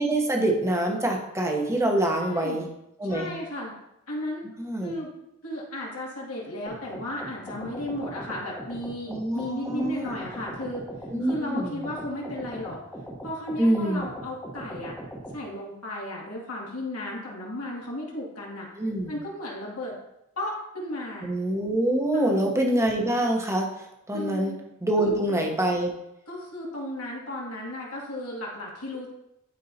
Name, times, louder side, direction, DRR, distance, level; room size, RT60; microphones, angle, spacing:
voice 1, 0.0-2.7 3.0-3.3 4.6-4.9 9.1-10.1 11.1-11.8 13.6-14.1 18.8-19.2 21.2-24.5 24.8-25.9, right 1 dB, 15° right, 1 dB, 1.1 m, -25 dB
voice 2, 2.1-2.6 3.1-3.7 4.1-4.4 4.8-5.1 5.4-10.9 11.2-12.8 13.2-15.0 15.3-18.7 19.1-20.0 20.4-21.3 22.1-22.5 24.1-24.6 25.0-25.1 26.3-29.1, left 1 dB, 75° left, -3 dB, 2.5 m, -34 dB
sound 1, 6.7-15.4, right 1 dB, 10° left, 1.2 m, -40 dB
11.5 x 4.6 x 2.8 m, 0.85 s
head